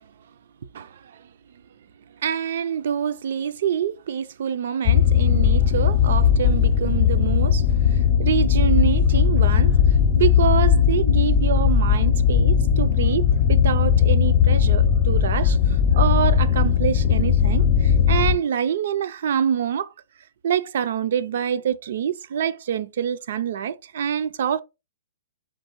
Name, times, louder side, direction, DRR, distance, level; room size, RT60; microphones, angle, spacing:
voice 1, 0.7-1.3 2.1-19.9 20.4-24.6, right 8 dB, 55° right, 0.3 m, -26 dB
sound 1, 4.8-18.4, left 8 dB, 30° left, 0.4 m, -18 dB
4.4 x 3.2 x 2.9 m
hypercardioid pair, 170°, 0 cm